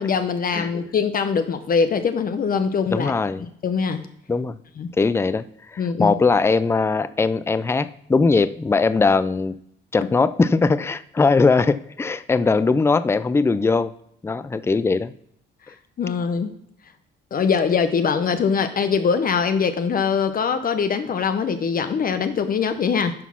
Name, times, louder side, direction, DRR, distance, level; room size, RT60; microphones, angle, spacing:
voice 1, 0.0-3.1 3.6-4.1 4.8-4.9 5.8-6.1 16.0-16.5 17.3-23.1, left 6 dB, 45° left, 9 dB, 0.7 m, -22 dB
voice 2, 2.9-3.4 4.3-4.6 5.0-9.6 9.9-13.9 14.2-15.1, left 4 dB, 15° left, 14 dB, 0.4 m, -20 dB
11.0 x 4.0 x 5.6 m, 0.68 s
cardioid pair, 90°, 20 cm